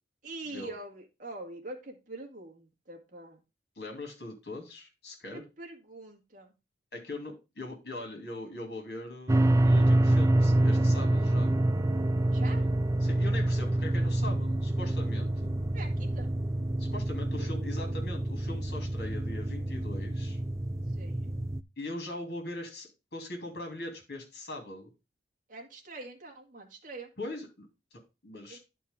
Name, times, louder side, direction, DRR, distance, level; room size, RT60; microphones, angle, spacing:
voice 1, 0.2-3.4 5.3-6.5 12.3-12.7 15.7-16.3 17.4-17.5 20.9-21.4 25.5-27.1 28.5-28.6, right 2 dB, 45° right, 1 dB, 2.0 m, -44 dB
voice 2, 3.8-5.4 6.9-9.3 9.6-11.5 13.0-15.5 16.8-20.4 21.8-24.9 27.2-27.7 28.2-28.6, left 2 dB, 65° left, 3 dB, 2.9 m, -41 dB
sound 1, 9.3-21.6, right 1 dB, 15° right, 0.3 m, -27 dB
11.0 x 4.5 x 3.7 m, 0.27 s
head